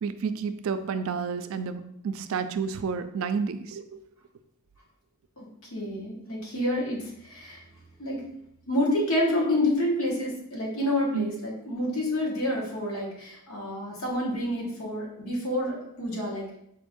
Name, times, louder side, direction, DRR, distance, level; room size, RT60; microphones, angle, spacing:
voice 1, 0.0-4.0 11.1-11.3, right 5 dB, 70° right, 9 dB, 0.3 m, -30 dB
voice 2, 5.7-7.6 8.0-8.2 8.7-16.6, left 1 dB, 80° left, -3 dB, 1.3 m, -28 dB
4.4 x 2.6 x 3.6 m, 0.76 s
head